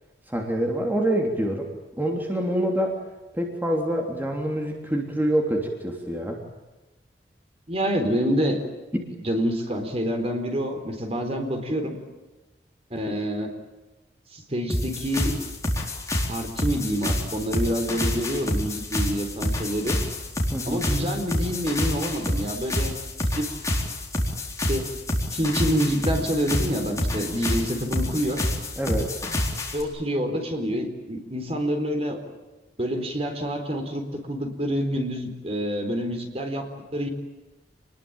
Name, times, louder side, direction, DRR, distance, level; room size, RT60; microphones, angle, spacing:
voice 1, 0.3-1.7 2.0-3.0 3.3-6.4 20.5-20.9 28.8-29.1, right 1 dB, 10° right, 1 dB, 3.2 m, -26 dB
voice 2, 7.7-8.6 9.2-12.0 12.9-13.5 14.3-15.4 16.3-20.0 20.7-22.9 23.3-23.5 24.7-24.9 25.3-28.4 29.7-32.2 32.8-37.1, equal, 35° right, 5 dB, 4.1 m, -27 dB
sound 1, 14.7-29.8, left 1 dB, 20° left, 4.3 m, -28 dB
28.5 x 21.0 x 8.9 m, 1.1 s
head